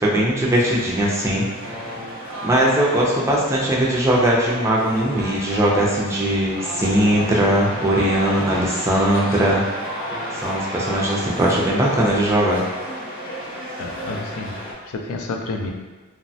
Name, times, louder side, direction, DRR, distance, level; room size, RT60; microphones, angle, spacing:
voice 1, 0.0-1.5 2.4-9.6 10.3-12.6, right 1 dB, 15° right, -4 dB, 0.4 m, -20 dB
sound 1, 0.5-14.7, equal, 40° left, 0.7 m, -34 dB
sound 2, 1.6-3.1 4.3-8.7 9.6-9.7 10.0-11.6 11.9-12.2 12.4-12.9, equal, 85° right, 0.7 m, -33 dB
voice 2, 13.8-15.7, left 3 dB, 75° left, 2 dB, 0.4 m, -30 dB
3.0 x 2.1 x 2.6 m, 1.3 s
head